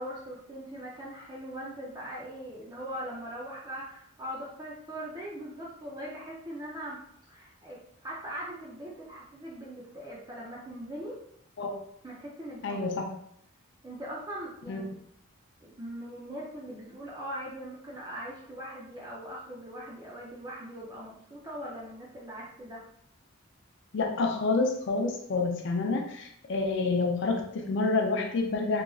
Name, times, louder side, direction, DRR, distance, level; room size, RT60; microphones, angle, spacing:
voice 1, 0.0-7.0 7.3-11.2 12.0-13.0 13.8-14.9 15.6-22.8, equal, 20° right, -6 dB, 0.4 m, -41 dB
voice 2, 12.6-13.0 14.7-14.8 23.9-28.8, left 3 dB, 55° left, 2 dB, 0.4 m, -28 dB
2.9 x 2.4 x 2.3 m, 0.70 s
head